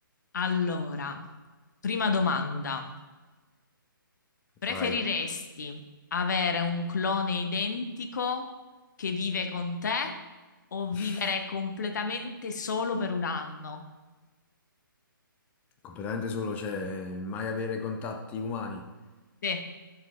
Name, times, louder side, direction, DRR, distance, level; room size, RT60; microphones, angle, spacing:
voice 1, 0.3-1.2 1.8-2.9 4.6-5.8 6.1-8.5 9.0-10.2 10.7-13.8 19.4-19.6, left 4 dB, 55° left, 5 dB, 1.0 m, -30 dB
voice 2, 4.7-5.0 10.9-11.3 15.8-18.9, left 4 dB, 15° left, 4 dB, 0.6 m, -34 dB
12.0 x 4.8 x 3.2 m, 1.3 s
figure-of-eight pair, 135°, 12 cm